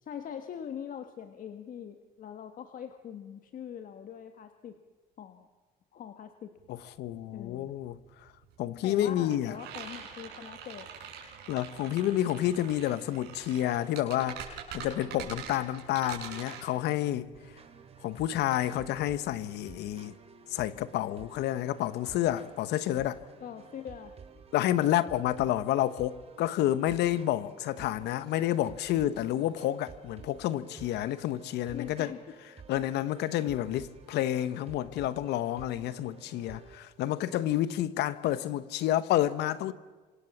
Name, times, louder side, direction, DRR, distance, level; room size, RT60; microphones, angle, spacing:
voice 1, 0.0-4.8 5.2-5.5 5.9-6.5 7.3-7.7 8.8-10.9 23.4-24.2 31.7-32.2, left 8 dB, 55° left, 1.6 m, -42 dB
sound 1, 6.6-6.7 6.9-19.6, right 7 dB, 85° right, 6.9 m, -44 dB
voice 2, 6.7-8.0 8.6-9.6 11.5-14.4 14.7-17.3 18.0-20.2 20.5-23.2 24.5-32.1 32.7-39.7, left 13 dB, 80° left, 1.2 m, -29 dB
sound 2, 17.3-36.8, right 5 dB, 35° right, 3.8 m, -52 dB
28.0 x 26.0 x 7.3 m
cardioid pair, 110°, 17 cm